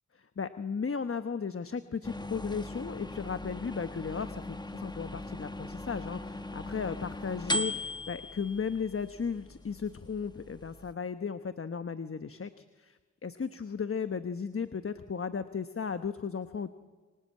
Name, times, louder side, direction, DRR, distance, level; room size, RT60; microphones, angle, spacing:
voice 1, 0.1-16.7, left 6 dB, 45° left, 10 dB, 1.1 m, -35 dB
sound 1, 2.0-10.9, left 1 dB, 15° left, 1.5 m, -39 dB
28.0 x 24.0 x 8.7 m, 1.4 s
cardioid pair, 70°, 30 cm